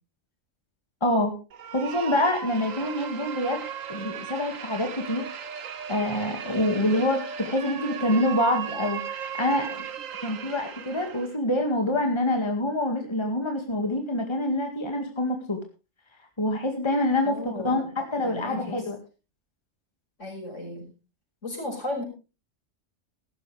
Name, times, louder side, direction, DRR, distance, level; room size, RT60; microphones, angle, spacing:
voice 1, 1.0-1.3 1.7-3.6 3.9-5.2 5.9-9.8 10.2-15.6 16.4-19.0, left 1 dB, 20° left, 3 dB, 2.1 m, -26 dB
sound 1, 1.5-11.4, right 8 dB, 85° right, 1.4 m, -36 dB
voice 2, 17.2-17.9 18.2-18.8 20.2-20.9 21.4-22.0, left 1 dB, 70° left, 1 dB, 6.5 m, -35 dB
15.5 x 13.5 x 3.4 m, 0.30 s
omnidirectional pair, 1.3 m